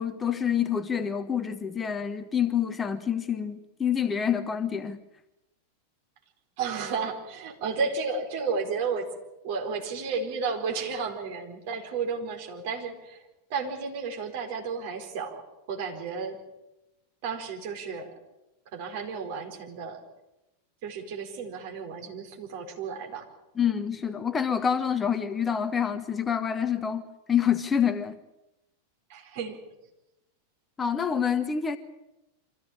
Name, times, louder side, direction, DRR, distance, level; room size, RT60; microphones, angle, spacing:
voice 1, 0.0-5.0 23.6-28.2 30.8-31.8, left 8 dB, 20° left, 1.2 m, -27 dB
voice 2, 6.6-9.1 9.4-13.2 13.5-15.4 15.7-16.4 17.2-18.1 18.7-20.0 20.8-23.3 29.1-29.6, right 5 dB, 50° right, 4.5 m, -32 dB
25.0 x 15.5 x 8.8 m
figure-of-eight pair, 90°, 0 cm